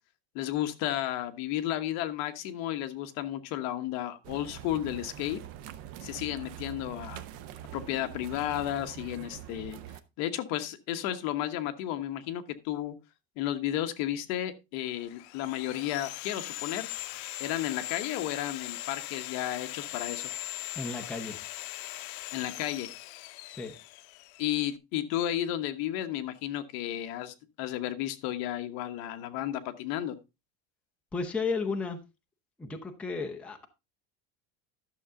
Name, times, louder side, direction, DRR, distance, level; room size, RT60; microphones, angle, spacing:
voice 1, 0.3-5.4 6.0-7.2 7.7-9.8 10.2-12.9 13.4-16.9 17.4-20.3 22.3-22.9 24.4-30.1, left 12 dB, 55° left, 1.1 m, -33 dB
sound 1, 4.2-10.0, right 12 dB, 45° right, 0.8 m, -44 dB
Sawing, 14.9-24.7, left 17 dB, 90° left, 0.6 m, -40 dB
voice 2, 20.8-21.4 23.5-23.8 31.1-32.0 32.6-33.7, left 4 dB, 5° left, 0.7 m, -33 dB
12.0 x 6.8 x 3.7 m
cardioid pair, 175°, 32 cm